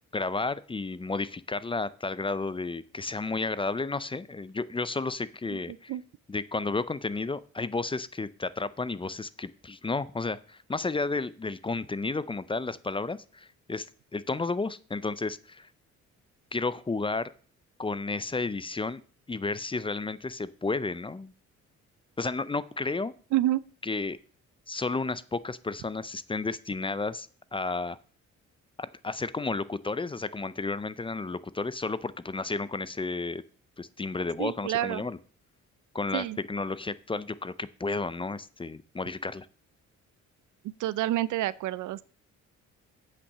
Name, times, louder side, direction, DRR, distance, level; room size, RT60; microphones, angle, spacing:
voice 1, 0.1-5.9 6.3-13.9 14.1-15.7 16.5-17.3 17.8-19.0 19.3-21.3 22.2-23.1 23.8-24.2 24.7-28.0 28.8-33.4 33.8-35.2 35.9-39.5, left 3 dB, 15° left, 17 dB, 0.5 m, -32 dB
voice 2, 34.4-35.0 36.1-36.4 40.8-42.0, right 14 dB, 80° right, 19 dB, 0.6 m, -28 dB
8.3 x 5.8 x 6.6 m, 0.42 s
cardioid pair, 90°, 30 cm